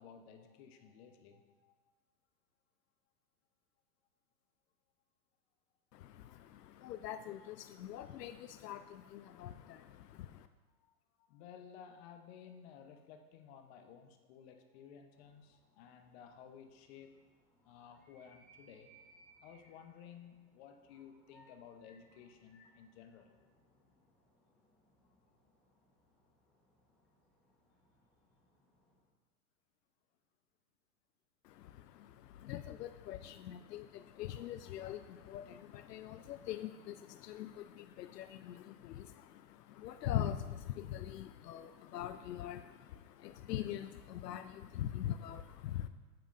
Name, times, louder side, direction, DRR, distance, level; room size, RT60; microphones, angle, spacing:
voice 1, 0.0-1.8 10.8-10.9 11.2-17.1 17.6-18.9 19.4-23.3, left 7 dB, 40° left, 6 dB, 0.8 m, -55 dB
voice 2, 5.9-10.5 31.4-45.9, left 11 dB, 80° left, 10 dB, 0.5 m, -43 dB
sound 1, 15.1-29.1, right 1 dB, ahead, 1.1 m, -69 dB
8.9 x 7.2 x 2.5 m, 1.3 s
hypercardioid pair, 130°, 47 cm